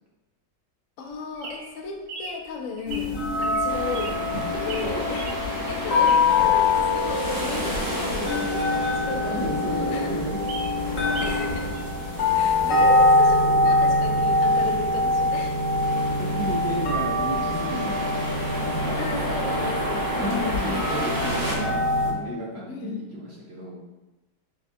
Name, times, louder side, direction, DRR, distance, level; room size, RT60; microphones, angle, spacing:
voice 1, 1.0-9.5 9.9-10.2 10.9-11.8 12.2-15.6 18.9-20.8 22.7-23.0, left 4 dB, 70° left, 2 dB, 0.7 m, -35 dB
Bird vocalization bird call bird song, 1.0-6.5 6.9-9.1 9.5-9.6 9.8-9.9 10.2-11.5 11.7-11.8, right 4 dB, 90° right, 1.3 m, -40 dB
sound 1, 2.9-22.1, left 2 dB, 55° left, 1.2 m, -24 dB
sound 2, 3.7-21.5, right 1 dB, 20° right, 0.6 m, -33 dB
voice 2, 4.3-4.9 6.4-6.5 9.3-10.4 16.1-18.0 18.6-19.0 20.2-23.8, right 1 dB, 65° right, -5 dB, 0.6 m, -32 dB
6.8 x 2.3 x 2.6 m, 1.1 s
omnidirectional pair, 1.9 m